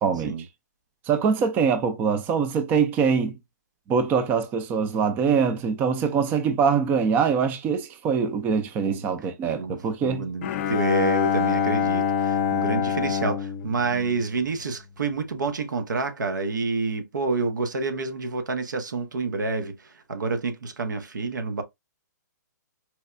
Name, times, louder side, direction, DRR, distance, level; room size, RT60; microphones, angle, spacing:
voice 1, 0.0-0.4 1.1-3.4 3.9-10.3, right 6 dB, 20° right, 0.4 m, -23 dB
voice 2, 9.5-21.6, right 3 dB, 85° right, 0.9 m, -28 dB
Bowed string instrument, 10.4-14.8, left 8 dB, 45° left, 0.5 m, -26 dB
4.4 x 2.2 x 2.4 m
hypercardioid pair, 140°, 10 cm